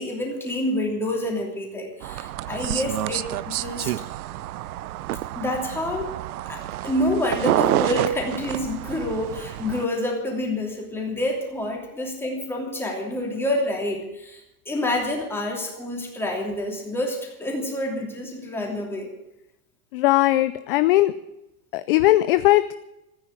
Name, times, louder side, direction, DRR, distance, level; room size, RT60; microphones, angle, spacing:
voice 1, 0.0-3.9 5.3-6.1 6.4-19.1, left 1 dB, 5° left, 0 dB, 2.9 m, -28 dB
sound 1, 2.0-9.9, right 15 dB, 80° right, 0.7 m, -28 dB
voice 2, 19.9-21.1 21.7-22.7, left 16 dB, 40° left, 13 dB, 0.5 m, -19 dB
14.5 x 9.5 x 9.0 m, 0.92 s
supercardioid pair, 165°, 43 cm